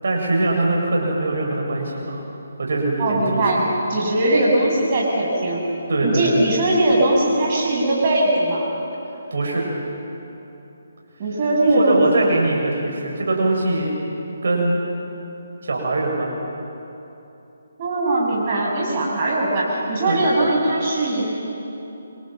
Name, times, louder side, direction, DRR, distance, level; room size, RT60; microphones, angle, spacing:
voice 1, 0.0-2.2 2.6-3.4 5.9-6.4 9.3-9.7 11.7-13.9 14.4-14.8 15.6-16.3 20.0-20.2, right 2 dB, 65° right, -1 dB, 7.2 m, -22 dB
voice 2, 3.0-5.7 6.0-8.7 11.2-12.3 17.8-21.3, right 1 dB, 40° right, -3 dB, 6.7 m, -20 dB
28.5 x 25.5 x 7.8 m, 3.0 s
figure-of-eight pair, 145°, 0 cm